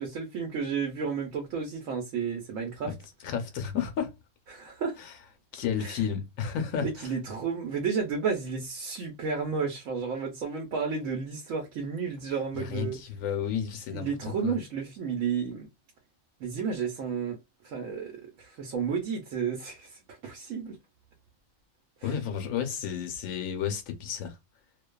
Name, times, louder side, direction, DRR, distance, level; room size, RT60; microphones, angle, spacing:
voice 1, 0.0-2.9 4.5-5.0 5.8-6.0 6.8-13.0 13.9-15.7 16.4-17.4 17.6-18.1 18.4-20.8 22.0-22.2, right 6 dB, 80° right, 1.0 m, -32 dB
voice 2, 3.3-4.1 5.5-6.9 12.6-14.1 14.4-14.6 22.0-24.4, left 8 dB, 80° left, 1.1 m, -31 dB
2.5 x 2.2 x 2.2 m
omnidirectional pair, 1.4 m